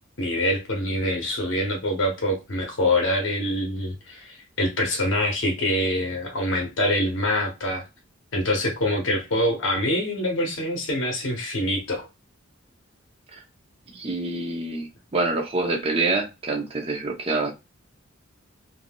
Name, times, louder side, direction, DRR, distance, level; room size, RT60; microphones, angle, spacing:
voice 1, 0.2-7.8 8.3-12.1, left 1 dB, 65° left, 0.7 m, -25 dB
voice 2, 13.9-14.9 15.1-17.5, right 3 dB, 30° right, 0.6 m, -26 dB
3.3 x 2.5 x 2.2 m
head